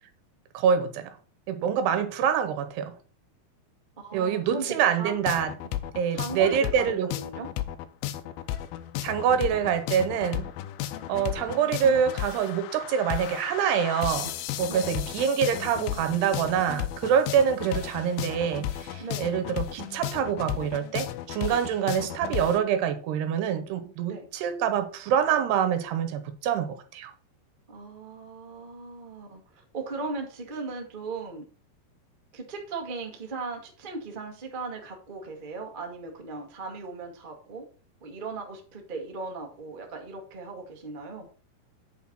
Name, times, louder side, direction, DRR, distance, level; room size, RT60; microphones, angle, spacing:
voice 1, 0.5-1.1 1.5-2.9 4.1-5.5 6.0-7.1 9.0-10.5 11.1-14.3 14.6-27.1, right 8 dB, 85° right, 3.2 m, -26 dB
voice 2, 4.0-5.2 6.1-7.5 14.7-15.0 19.0-19.4 24.1-24.3 27.7-29.4 29.7-31.4 32.3-37.6 38.0-41.3, right 4 dB, 60° right, 0.5 m, -37 dB
sound 1, 5.3-22.6, left 12 dB, 80° left, 2.3 m, -34 dB
9.3 x 4.7 x 6.0 m
omnidirectional pair, 4.6 m